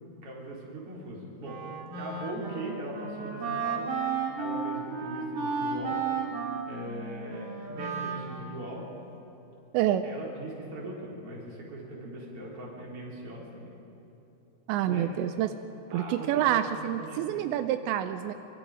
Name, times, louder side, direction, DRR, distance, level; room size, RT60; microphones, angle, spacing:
voice 1, 0.2-1.6 2.0-6.0 6.7-8.9 10.0-13.7 14.9-15.1 15.9-17.4, right 1 dB, 30° right, -4 dB, 4.3 m, -40 dB
Wind instrument woodwind instrument, 1.4-8.7, right 5 dB, 55° right, 3.5 m, -33 dB
voice 2, 9.7-10.0 14.7-15.5 15.9-18.3, right 11 dB, 85° right, 9 dB, 2.5 m, -27 dB
25.0 x 25.0 x 5.0 m, 2.9 s
omnidirectional pair, 5.8 m